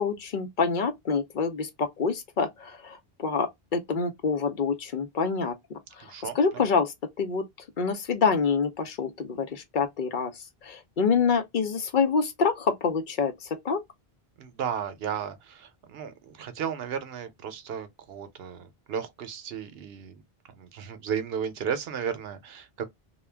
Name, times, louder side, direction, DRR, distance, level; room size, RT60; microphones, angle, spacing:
voice 1, 0.0-3.5 3.7-5.5 6.0-7.4 7.8-10.3 10.6-13.8, left 5 dB, 60° left, 0.7 m, -26 dB
voice 2, 6.0-6.6 14.4-20.2 20.5-22.9, right 7 dB, 75° right, 0.8 m, -34 dB
2.3 x 2.2 x 3.2 m
omnidirectional pair, 1.0 m